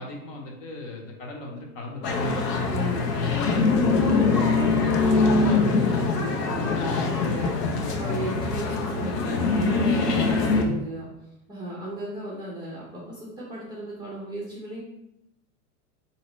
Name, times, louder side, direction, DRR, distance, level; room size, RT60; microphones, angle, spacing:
voice 1, 0.0-2.1 3.7-4.0, left 2 dB, 45° left, 0 dB, 1.0 m, -38 dB
sound 1, 2.0-10.6, left 4 dB, 75° left, 0.8 m, -23 dB
voice 2, 2.6-11.1 11.5-14.8, right 1 dB, 10° right, -7 dB, 0.5 m, -35 dB
3.7 x 2.9 x 3.1 m, 0.86 s
hypercardioid pair, 125°, 48 cm